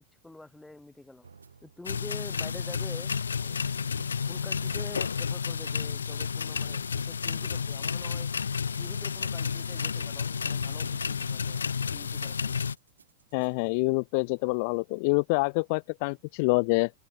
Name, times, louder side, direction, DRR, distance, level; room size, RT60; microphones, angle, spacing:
voice 1, 0.2-1.3 1.6-3.7 4.3-8.3 8.8-11.6 11.9-12.6, left 2 dB, 5° left, 8.0 m, -47 dB
sound 1, 1.2-13.5, right 5 dB, 75° right, 2.4 m, -55 dB
sound 2, 1.8-12.7, left 6 dB, 70° left, 0.9 m, -31 dB
voice 2, 13.3-16.9, left 30 dB, 45° left, 0.4 m, -26 dB
open air
figure-of-eight pair, 90°, 0 cm